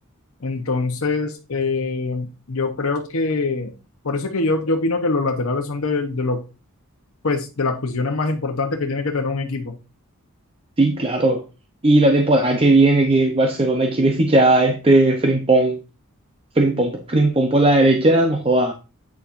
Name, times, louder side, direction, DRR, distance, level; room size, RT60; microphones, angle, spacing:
voice 1, 0.4-3.7 4.0-6.4 7.2-9.7, left 3 dB, 70° left, 0.9 m, -23 dB
voice 2, 10.8-11.4 11.8-15.8 16.5-18.7, right 2 dB, 25° right, 0.7 m, -17 dB
8.5 x 7.1 x 2.5 m
head